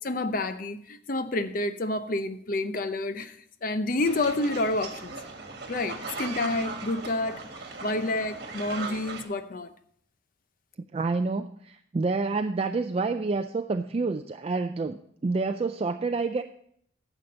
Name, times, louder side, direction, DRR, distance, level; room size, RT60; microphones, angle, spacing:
voice 1, 0.0-3.4 3.6-5.1 5.7-7.4 7.8-9.7, left 2 dB, 45° left, 0.7 m, -29 dB
sound 1, 4.0-9.2, right 3 dB, 55° right, 1.6 m, -38 dB
voice 2, 10.9-16.4, right 3 dB, 30° right, 0.3 m, -28 dB
11.0 x 7.1 x 5.1 m
head